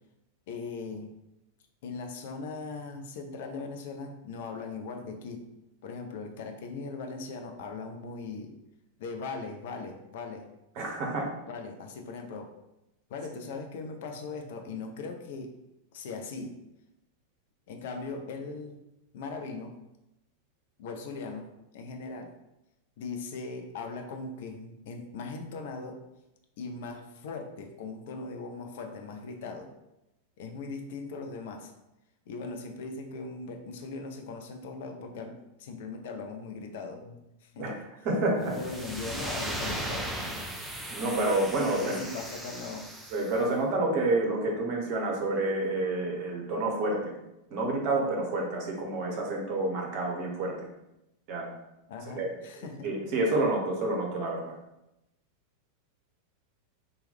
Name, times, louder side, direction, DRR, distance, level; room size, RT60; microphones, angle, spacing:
voice 1, 0.5-1.1 1.8-5.4 5.8-8.5 9.0-10.5 11.5-12.5 13.1-15.5 15.9-16.6 17.7-18.8 19.1-19.8 20.8-22.3 23.0-26.0 26.6-29.7 30.4-31.7 32.3-37.7 38.4-40.1 41.8-42.9 51.9-52.9, left 4 dB, 55° left, 4 dB, 0.4 m, -39 dB
voice 2, 10.7-11.3 37.6-37.8 38.0-38.5 40.9-42.0 43.1-47.1 47.5-50.7 51.3-51.5 52.1-52.3 52.6-54.5, right 2 dB, 40° right, 0 dB, 0.8 m, -29 dB
sound 1, 38.5-43.4, right 1 dB, 5° right, 0.4 m, -37 dB
2.9 x 2.2 x 3.3 m, 0.91 s
figure-of-eight pair, 90°, 0 cm